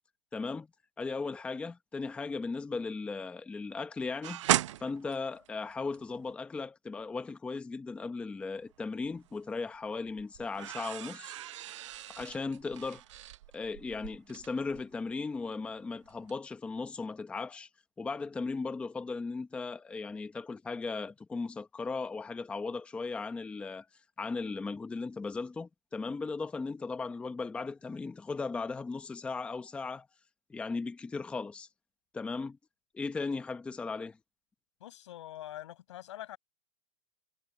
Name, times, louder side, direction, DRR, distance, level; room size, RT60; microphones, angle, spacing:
voice 1, 0.3-0.7 1.0-4.4 4.8-11.3 12.1-13.2 13.5-17.7 18.0-23.9 24.2-30.1 30.5-31.7 32.1-32.6 32.9-34.2, left 4 dB, 5° left, 0.8 m, -37 dB
sound 1, 4.2-6.3 8.5-9.4 9.7-15.8 16.1-16.3, right 13 dB, 80° right, 0.7 m, -36 dB
voice 2, 34.8-36.4, left 13 dB, 75° left, 6.5 m, -44 dB
supercardioid pair, 160°, 15 cm